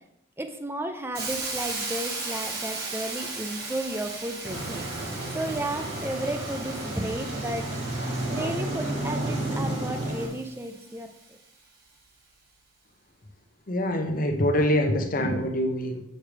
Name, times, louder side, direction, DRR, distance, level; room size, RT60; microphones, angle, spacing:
voice 1, 0.4-4.9 5.3-7.7 8.3-11.4, right 1 dB, 10° right, 7 dB, 0.6 m, -33 dB
Hiss, 1.2-11.0, right 3 dB, 50° right, 1.4 m, -37 dB
sound 1, 4.4-10.3, right 1 dB, 75° right, 2.8 m, -31 dB
voice 2, 13.7-16.0, left 1 dB, 45° left, 5 dB, 0.8 m, -25 dB
7.3 x 6.6 x 3.3 m, 0.82 s
head